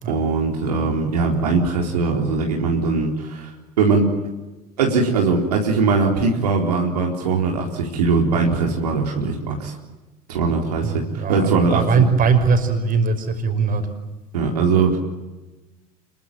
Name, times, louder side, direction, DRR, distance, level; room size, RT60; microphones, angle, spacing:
voice 1, 0.1-3.5 3.8-4.1 4.8-9.8 10.3-12.0 14.3-15.0, right 4 dB, 80° right, 0 dB, 4.1 m, -20 dB
voice 2, 10.8-13.8, right 5 dB, 45° right, 7 dB, 5.6 m, -20 dB
27.0 x 23.0 x 9.1 m, 1.1 s
hypercardioid pair, 75°, 20 cm